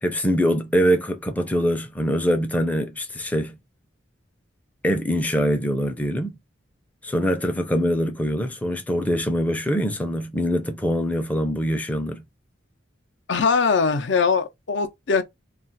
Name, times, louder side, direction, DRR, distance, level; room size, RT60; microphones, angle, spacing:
voice 1, 0.0-3.6 4.8-6.4 7.0-12.2, equal, 10° left, 0.4 m, -23 dB
voice 2, 13.3-15.2, left 5 dB, 65° left, 0.5 m, -21 dB
2.4 x 2.3 x 3.9 m
head